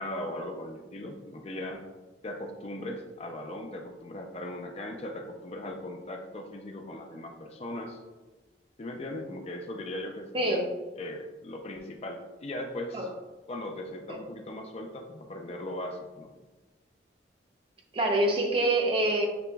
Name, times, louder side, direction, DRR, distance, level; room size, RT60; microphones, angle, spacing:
voice 1, 0.0-1.9 2.2-8.0 8.8-10.6 11.0-13.1 13.5-16.3, left 1 dB, 35° left, 2 dB, 0.4 m, -38 dB
voice 2, 10.3-10.7 12.9-13.1 14.1-14.2 17.9-19.3, right 1 dB, 30° right, 1 dB, 0.6 m, -25 dB
6.9 x 2.9 x 2.2 m, 1.2 s
head